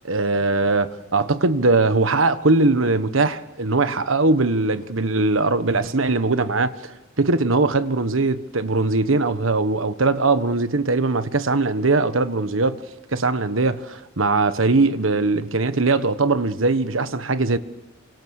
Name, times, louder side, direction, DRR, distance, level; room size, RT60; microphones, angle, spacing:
voice 1, 0.0-6.7 7.2-12.8 13.1-17.6, right 3 dB, 75° right, 1.4 m, -20 dB
28.5 x 25.5 x 6.6 m
head